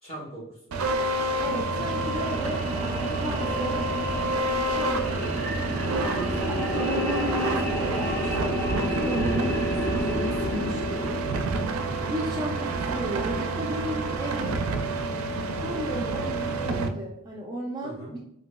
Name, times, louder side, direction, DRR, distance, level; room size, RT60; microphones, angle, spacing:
voice 1, 0.0-0.8 6.0-6.7 11.8-12.1 17.8-18.1, right 1 dB, 30° left, -5 dB, 1.5 m, -40 dB
sound 1, 0.7-16.9, right 2 dB, 85° right, 0.4 m, -29 dB
voice 2, 1.4-2.6 3.2-3.9 4.7-5.1 6.5-11.2 12.1-14.6 15.6-18.2, right 1 dB, 20° right, -2 dB, 0.4 m, -34 dB
sound 2, 1.6-12.0, left 1 dB, 15° left, 1.1 m, -31 dB
3.9 x 2.7 x 2.2 m, 0.74 s
head